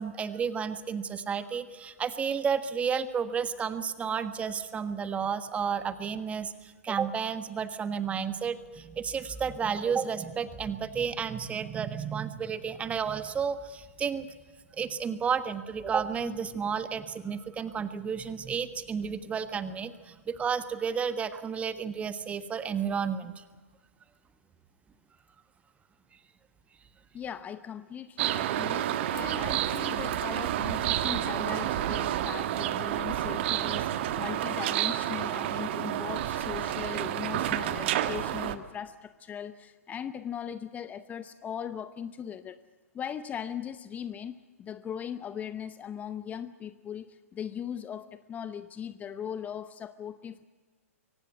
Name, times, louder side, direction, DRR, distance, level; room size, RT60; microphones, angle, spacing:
voice 1, 0.0-14.3 14.8-23.4, right 6 dB, 15° right, 12 dB, 1.4 m, -32 dB
voice 2, 27.1-28.8 29.1-42.6 42.9-50.4, left 8 dB, 20° left, 13 dB, 0.8 m, -39 dB
sound 1, 28.2-38.6, right 12 dB, 50° right, 1.4 m, -30 dB
23.5 x 18.5 x 8.2 m, 1.4 s
figure-of-eight pair, 110°, 8 cm